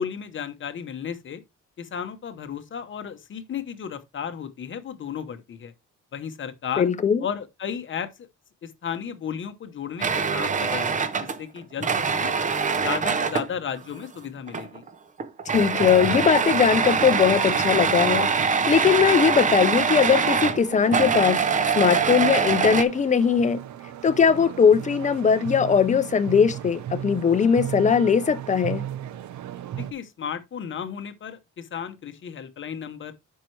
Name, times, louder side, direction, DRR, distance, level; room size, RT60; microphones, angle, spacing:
voice 1, 0.0-1.4 1.8-5.7 6.1-6.9 7.2-8.3 8.6-12.3 12.8-14.8 29.8-33.1, left 7 dB, 40° left, 0.8 m, -34 dB
voice 2, 6.8-7.2 15.5-18.3 18.7-21.4 21.8-23.6 24.0-28.8, left 7 dB, 25° left, 0.4 m, -20 dB
sound 1, 10.0-13.5 14.5-14.9 15.2-22.8, right 5 dB, 25° right, 0.5 m, -23 dB
sound 2, 16.6-29.9, right 11 dB, 70° right, 0.6 m, -37 dB
8.8 x 5.5 x 3.2 m
wide cardioid pair, 180°, 30 cm